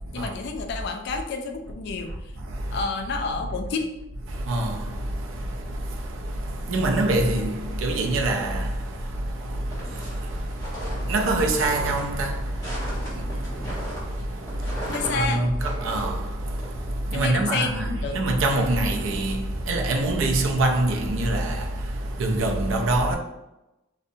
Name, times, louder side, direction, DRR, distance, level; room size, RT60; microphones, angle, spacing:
voice 1, 0.1-2.1 2.7-3.9 6.7-6.9 14.9-15.5 17.1-18.2, left 4 dB, 55° left, 0.3 m, -29 dB
voice 2, 2.4-2.9 4.3-23.2, right 2 dB, 80° right, 0.4 m, -26 dB
sound 1, 9.7-17.2, equal, 20° left, 1.0 m, -37 dB
2.6 x 2.0 x 2.6 m
head